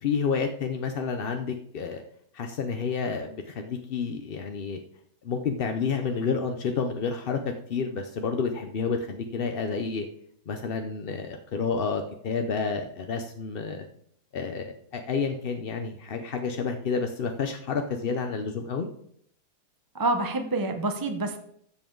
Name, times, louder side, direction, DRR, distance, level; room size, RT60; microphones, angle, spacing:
voice 1, 0.0-2.0 2.3-4.8 5.2-10.1 10.5-13.9 14.3-18.9, left 5 dB, 55° left, 5 dB, 0.6 m, -30 dB
voice 2, 19.9-21.4, right 2 dB, 20° right, 5 dB, 0.5 m, -27 dB
12.5 x 7.3 x 3.8 m, 0.66 s
omnidirectional pair, 1.8 m